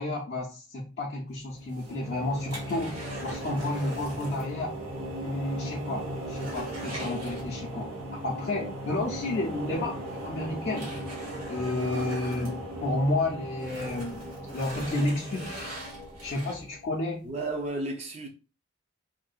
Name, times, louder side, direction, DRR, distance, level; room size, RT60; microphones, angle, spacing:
voice 1, 0.0-4.8 5.2-10.9 11.5-15.5 16.2-17.2, left 2 dB, 45° left, 0.4 m, -31 dB
sound 1, 1.5-16.8, right 1 dB, 65° right, 0.8 m, -38 dB
sound 2, 1.6-4.6 4.8-4.9 5.4-5.5 5.9-7.9 9.3-9.4 10.1-13.2 13.5-16.9 17.4-17.5, right 1 dB, 90° right, 1.5 m, -43 dB
voice 2, 17.2-18.3, right 2 dB, 30° right, 0.5 m, -32 dB
2.5 x 2.1 x 2.3 m
head